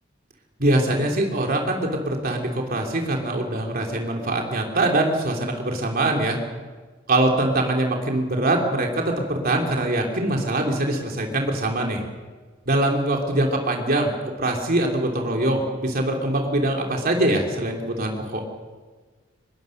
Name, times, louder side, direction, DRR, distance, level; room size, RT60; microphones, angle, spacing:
voice 1, 0.6-6.4 7.1-12.0 12.7-14.1 14.4-18.4, right 1 dB, 50° right, 1 dB, 3.3 m, -23 dB
24.5 x 21.5 x 6.6 m, 1.4 s
head